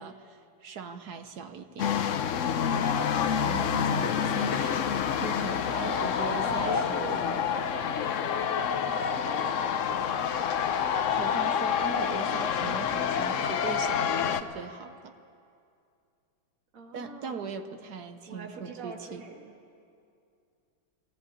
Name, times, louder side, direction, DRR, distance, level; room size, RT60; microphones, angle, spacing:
voice 1, 0.0-1.9 3.4-4.8 5.2-7.4 10.9-15.1 16.9-19.2, right 6 dB, 55° right, 8 dB, 1.3 m, -40 dB
sound 1, 1.8-14.4, left 7 dB, 60° left, 0.8 m, -28 dB
voice 2, 5.8-10.0 16.7-17.4 18.3-19.5, right 3 dB, 40° right, 1 dB, 2.5 m, -44 dB
21.0 x 16.5 x 9.9 m, 2.4 s
omnidirectional pair, 2.2 m